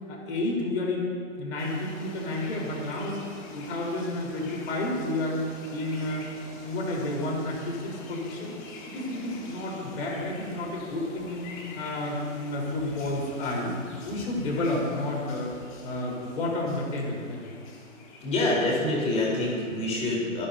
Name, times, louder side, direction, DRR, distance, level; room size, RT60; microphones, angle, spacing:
voice 1, 0.1-1.1 1.4-3.3 3.5-5.4 5.7-8.5 8.8-11.5 11.7-13.7 14.0-15.6 15.8-17.5, left 2 dB, 55° left, -2 dB, 4.3 m, -31 dB
sound 1, 1.6-19.9, left 2 dB, 35° left, 2.6 m, -45 dB
voice 2, 18.2-20.5, left 2 dB, 15° left, -4 dB, 4.0 m, -26 dB
27.0 x 11.0 x 2.8 m, 2.2 s
figure-of-eight pair, 120°, 40 cm